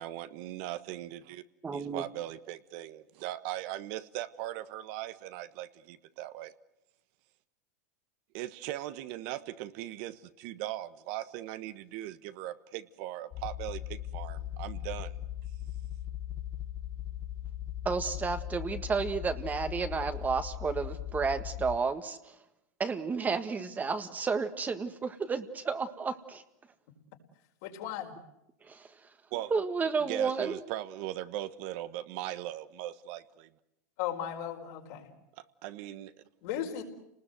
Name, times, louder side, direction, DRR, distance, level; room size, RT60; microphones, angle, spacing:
voice 1, 0.0-1.4 1.7-6.5 8.3-15.2 29.3-29.5 30.1-33.5 35.4-36.2, right 14 dB, 55° right, 12 dB, 1.3 m, -39 dB
voice 2, 1.6-2.0 17.8-22.3 22.8-26.4 28.7-28.9 29.5-30.6, right 5 dB, 20° right, 8 dB, 1.7 m, -32 dB
sound 1, 13.3-21.8, left 12 dB, 40° left, 1.0 m, -39 dB
voice 3, 27.6-28.1 34.0-35.1 36.4-36.8, left 10 dB, 60° left, 2 dB, 4.6 m, -36 dB
30.0 x 20.0 x 7.9 m, 0.87 s
hypercardioid pair, 115°, 9 cm